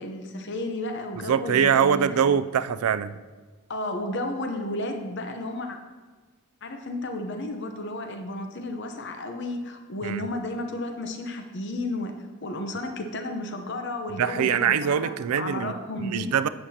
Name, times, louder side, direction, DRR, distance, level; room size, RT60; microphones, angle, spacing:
voice 1, 0.0-2.3 3.7-5.8 6.6-12.1 12.4-16.3, left 1 dB, 50° left, 5 dB, 0.8 m, -32 dB
voice 2, 1.3-3.1 10.0-10.2 14.2-16.5, right 8 dB, 80° right, 13 dB, 0.4 m, -23 dB
11.0 x 8.7 x 2.8 m, 1.4 s
head